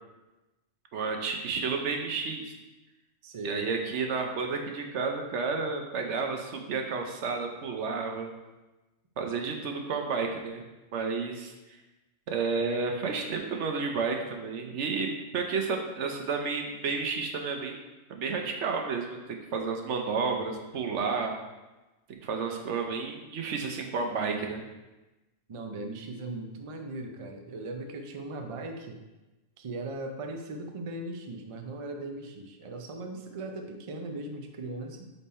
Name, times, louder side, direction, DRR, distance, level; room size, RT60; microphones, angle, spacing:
voice 1, 0.9-2.5 3.4-8.3 9.2-10.6 10.9-11.5 12.3-17.8 18.1-19.2 19.5-21.3 22.2-24.6, right 4 dB, 75° right, 3 dB, 1.1 m, -31 dB
voice 2, 3.2-3.7 25.5-29.0 29.6-35.1, right 2 dB, 45° right, 4 dB, 0.4 m, -38 dB
5.4 x 4.2 x 4.2 m, 1.1 s
omnidirectional pair, 1.2 m